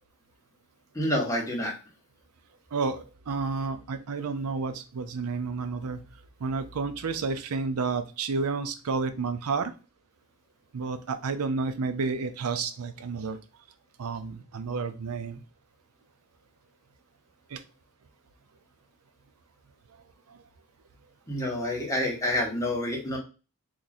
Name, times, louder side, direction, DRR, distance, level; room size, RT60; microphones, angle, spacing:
voice 1, 0.9-1.7 21.3-23.2, left 1 dB, 15° left, -2 dB, 1.0 m, -28 dB
voice 2, 2.7-6.0 6.4-9.7 10.7-13.4 14.0-15.4 17.5-17.6, right 4 dB, 80° right, 10 dB, 0.5 m, -31 dB
3.0 x 2.6 x 3.9 m, 0.33 s
head